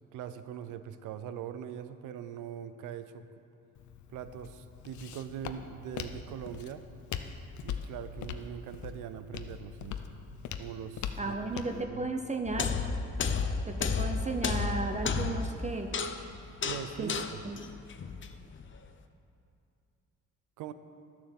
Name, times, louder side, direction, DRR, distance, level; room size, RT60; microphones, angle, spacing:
voice 1, 0.1-3.2 4.1-6.8 7.6-10.0 10.6-11.4 11.7-12.1 16.6-17.4 20.6-20.7, right 9 dB, 90° right, 11 dB, 0.7 m, -42 dB
Walk footsteps, 3.8-11.8, left 8 dB, 75° left, 0.7 m, -42 dB
voice 2, 11.2-12.7 13.7-15.9 17.0-17.1 17.4-17.6, right 3 dB, 25° right, 5 dB, 0.7 m, -34 dB
sound 1, 12.5-18.7, left 5 dB, 40° left, 0.8 m, -32 dB
11.5 x 7.2 x 7.2 m, 2.6 s
cardioid pair, 90°, 30 cm